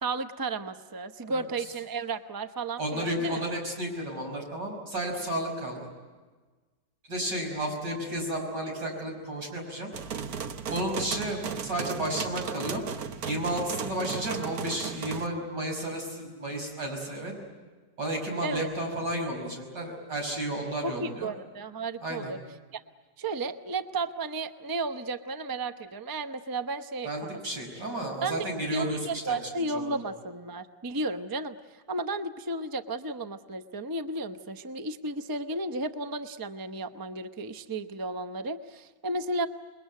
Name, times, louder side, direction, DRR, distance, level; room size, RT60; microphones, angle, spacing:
voice 1, 0.0-3.4 18.4-18.7 20.8-22.4 22.7-22.8 23.2-27.1 28.2-39.5, right 2 dB, 20° right, 9 dB, 0.5 m, -33 dB
voice 2, 2.8-5.8 7.1-9.9 10.7-12.8 13.2-17.3 18.0-21.3 22.0-22.3 27.0-29.4 29.7-30.0, right 1 dB, 85° right, 1 dB, 6.3 m, -32 dB
sound 1, 9.9-15.3, right 7 dB, 60° right, 1.4 m, -35 dB
28.5 x 21.5 x 9.2 m, 1.4 s
omnidirectional pair, 1.8 m